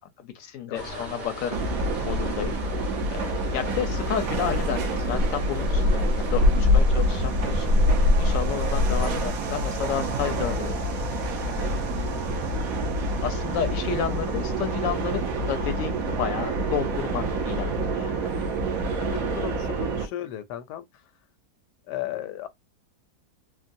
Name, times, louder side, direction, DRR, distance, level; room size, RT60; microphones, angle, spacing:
voice 1, 0.2-1.6 2.0-2.6 3.1-7.7 8.2-10.8 11.5-12.5 13.2-18.5, left 9 dB, 65° left, 0.9 m, -32 dB
sound 1, 0.7-9.3, left 2 dB, 80° right, 1.6 m, -25 dB
sound 2, 1.5-20.1, right 2 dB, 65° right, 1.1 m, -28 dB
voice 2, 18.9-20.8 21.9-22.5, left 12 dB, 85° left, 1.2 m, -35 dB
3.7 x 2.1 x 2.6 m
omnidirectional pair, 1.7 m